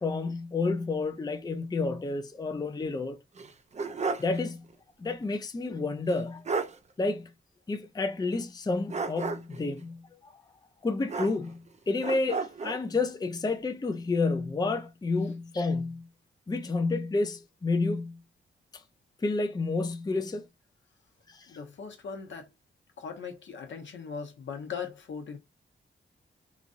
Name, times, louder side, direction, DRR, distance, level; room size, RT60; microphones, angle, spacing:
voice 1, 0.0-3.2 4.2-4.6 5.0-6.4 7.0-7.3 7.7-10.3 10.8-16.1 16.5-18.2 19.2-20.5 21.3-21.5, left 3 dB, 20° left, 0.5 m, -30 dB
sound 1, 3.4-4.4 4.7-4.8 6.1-6.2 6.5-6.8 8.9-9.6 11.1-11.7 12.0-12.8, right 4 dB, 35° right, 0.5 m, -33 dB
voice 2, 21.5-22.5 23.0-25.4, left 6 dB, 65° left, 0.9 m, -39 dB
3.0 x 2.5 x 2.5 m
cardioid pair, 50°, 21 cm